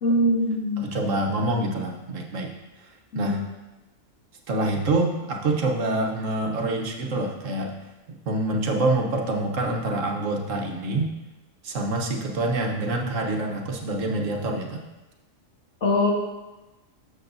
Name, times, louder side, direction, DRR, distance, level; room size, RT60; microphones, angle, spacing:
voice 1, 0.0-0.9 3.1-3.4 15.8-16.1, left 1 dB, 70° left, -1 dB, 1.8 m, -22 dB
voice 2, 0.8-2.5 3.1-3.4 4.5-7.7 8.1-11.1 11.6-14.8, right 2 dB, 70° right, 1 dB, 1.3 m, -26 dB
13.0 x 7.1 x 2.6 m, 1.1 s
omnidirectional pair, 1.4 m